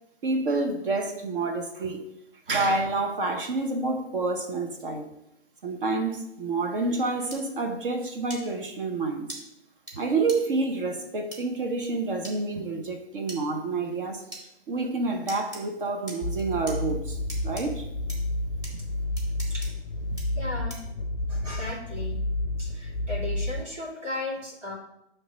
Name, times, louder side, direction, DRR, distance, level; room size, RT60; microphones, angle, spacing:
voice 1, 0.2-2.1 2.5-5.1 5.6-9.3 9.9-14.3 14.7-17.9 20.1-20.2, right 3 dB, 50° right, 0.7 m, -28 dB
sound 1, 7.3-7.4 8.3-8.4 9.3-9.4 9.9-10.0 10.3-10.4 11.3-11.4 12.2-12.4 13.3-13.4 14.3-14.4 15.3-15.6 16.1-16.8 17.3-17.6 18.1-18.2 18.6-18.7 19.2-19.7 20.2-20.3 20.7-20.9, right 1 dB, 10° right, 1.2 m, -39 dB
sound 2, 16.2-23.6, left 1 dB, 30° left, 0.6 m, -30 dB
voice 2, 18.8-19.1 19.5-19.7 20.4-20.8 21.3-22.2 22.6-24.8, left 2 dB, 85° right, 2.3 m, -36 dB
6.3 x 3.3 x 5.9 m
hypercardioid pair, 140°, 35 cm